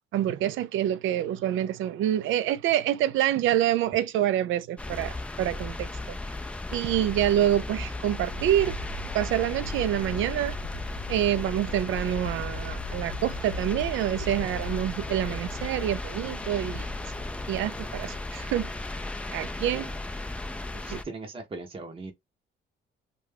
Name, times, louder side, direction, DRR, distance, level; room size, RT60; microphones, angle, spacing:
voice 1, 0.1-6.2 6.7-8.8 9.1-10.6 11.1-16.9 17.5-18.7 19.3-19.9 20.9-21.0, right 12 dB, 80° right, 0.4 m, -27 dB
sound 1, 4.8-21.0, left 2 dB, 5° left, 0.3 m, -36 dB
sound 2, 8.3-18.6, left 1 dB, 90° left, 0.6 m, -40 dB
voice 2, 20.7-22.1, right 3 dB, 25° right, 0.7 m, -39 dB
2.4 x 2.2 x 3.2 m
cardioid pair, 90°, 20 cm